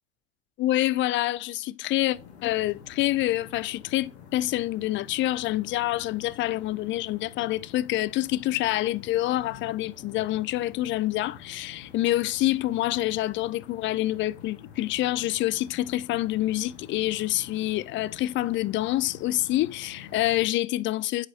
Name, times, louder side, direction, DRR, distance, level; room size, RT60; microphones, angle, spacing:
voice 1, 0.6-21.3, left 16 dB, 35° left, 0.4 m, -27 dB
sound 1, 2.1-20.5, left 7 dB, 75° left, 1.8 m, -48 dB
8.2 x 5.0 x 2.9 m
hypercardioid pair, 80°, 33 cm